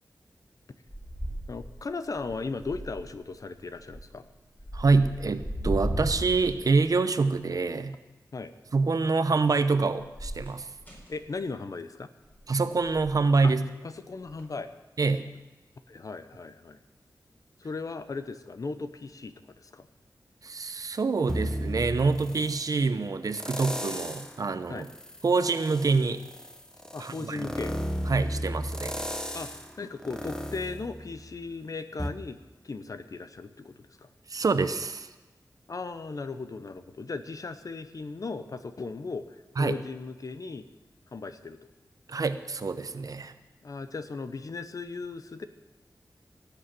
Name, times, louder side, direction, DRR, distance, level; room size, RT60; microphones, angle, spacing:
sound 1, 0.9-1.8 2.1-3.2 3.8-4.2 4.6-7.0 10.0-11.2 12.2-12.5 12.9-13.2 14.3-14.4, equal, 25° left, 4.5 m, -35 dB
voice 1, 1.5-4.2 8.3-8.5 11.1-12.1 13.4-13.5 13.8-14.7 15.9-16.8 17.6-19.9 24.7-24.9 26.9-27.7 29.3-29.5 29.8-32.4 32.6-34.1 35.7-40.7 41.1-41.6 43.6-45.4, left 4 dB, 55° left, 11 dB, 0.8 m, -37 dB
voice 2, 4.7-8.0 8.7-10.7 12.5-13.6 15.0-15.3 20.4-24.9 25.2-26.2 27.0-27.5 28.1-29.0 34.3-35.1 39.6-39.8 42.1-43.3, right 4 dB, 55° right, 11 dB, 0.8 m, -26 dB
sound 2, 21.3-22.7 23.3-24.4 24.8-31.5 32.0-32.1, equal, 10° left, 1.0 m, -34 dB
17.0 x 6.9 x 7.6 m, 1.1 s
wide cardioid pair, 95°, 7 cm